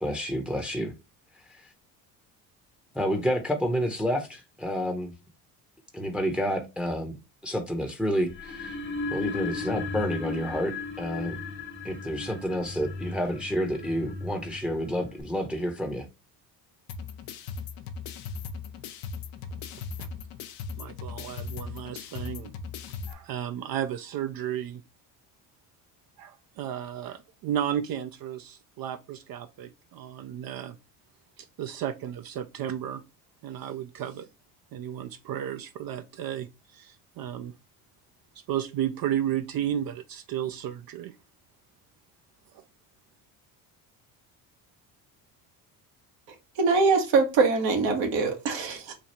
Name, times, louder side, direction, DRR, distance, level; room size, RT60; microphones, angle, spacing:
voice 1, 0.0-0.9 1.4-1.7 2.9-5.1 5.9-7.2 7.4-8.8 9.1-11.4 11.8-16.1, equal, ahead, 0.7 m, -29 dB
Another Sound, 8.3-15.2, left 3 dB, 25° left, 0.8 m, -36 dB
sound 1, 16.9-23.1, left 5 dB, 75° left, 0.7 m, -38 dB
voice 2, 19.7-20.1 20.8-22.5 23.1-24.8 26.2-30.8 31.4-33.0 33.4-34.3 34.7-37.5 38.5-41.2 42.5-42.6, right 10 dB, 50° right, 0.5 m, -33 dB
voice 3, 46.6-48.9, right 4 dB, 70° right, 1.2 m, -23 dB
3.3 x 2.3 x 4.1 m
hypercardioid pair, 65°, 46 cm